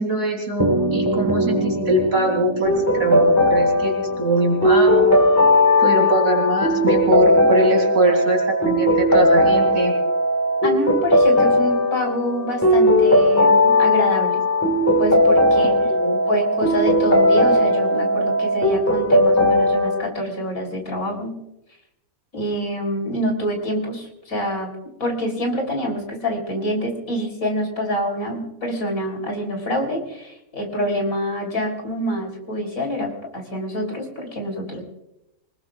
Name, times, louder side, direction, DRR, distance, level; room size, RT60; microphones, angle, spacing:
voice 1, 0.0-5.2 5.8-9.9 15.6-16.2, right 2 dB, 70° right, 1 dB, 3.3 m, -22 dB
sound 1, 0.6-5.2, right 1 dB, 15° right, 1.3 m, -25 dB
sound 2, 2.6-20.0, left 1 dB, 10° left, 1.4 m, -17 dB
voice 2, 10.6-14.4 15.0-15.8 16.3-21.3 22.3-24.8 25.0-34.8, equal, 75° left, 2 dB, 4.0 m, -26 dB
25.5 x 19.5 x 2.4 m, 0.87 s
omnidirectional pair, 1.5 m